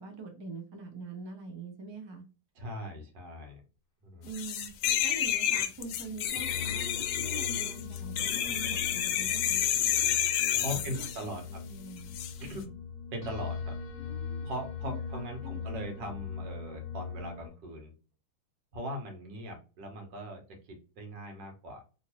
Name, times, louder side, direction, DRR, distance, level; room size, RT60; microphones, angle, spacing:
voice 1, 0.0-2.2 4.2-6.9 7.1-9.6 10.7-12.1 14.0-14.5 14.8-16.1, right 3 dB, 30° right, 2 dB, 0.5 m, -44 dB
voice 2, 2.6-3.6 4.0-4.3 10.6-11.4 12.4-12.8 13.1-13.7 14.4-17.9 18.7-21.8, equal, 80° right, 3 dB, 1.8 m, -40 dB
sound 1, 4.3-11.2 12.1-12.3, left 10 dB, 80° left, 1.2 m, -30 dB
sound 2, 6.4-17.5, left 6 dB, 20° left, 1.7 m, -40 dB
3.6 x 2.5 x 2.9 m, 0.32 s
omnidirectional pair, 1.9 m